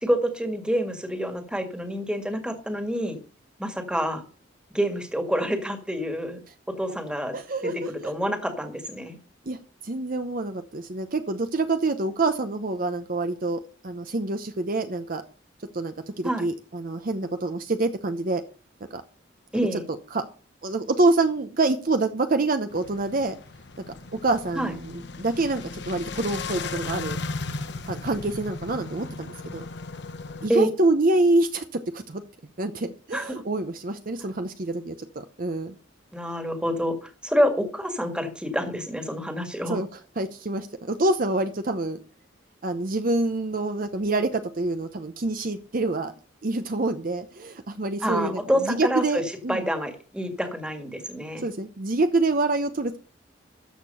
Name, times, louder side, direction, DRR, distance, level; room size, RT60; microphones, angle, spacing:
voice 1, 0.0-3.2 3.6-4.2 4.7-6.4 6.7-7.4 7.6-9.2 16.2-16.5 19.5-19.8 24.6-24.7 30.5-30.7 33.1-33.4 36.1-39.8 48.0-49.2 49.5-51.5, equal, 5° right, 6 dB, 1.8 m, -27 dB
voice 2, 7.3-7.9 9.5-9.6 9.8-15.2 15.7-18.4 18.9-19.0 19.7-20.2 20.6-23.4 24.2-27.2 27.9-29.7 30.4-32.2 32.6-34.9 35.4-35.7 39.7-39.9 40.2-42.0 42.6-46.1 46.4-49.7 51.4-53.0, right 2 dB, 50° right, 8 dB, 0.8 m, -26 dB
sound 1, 22.7-30.5, left 3 dB, 60° left, 0.9 m, -36 dB
13.5 x 6.7 x 5.5 m, 0.37 s
head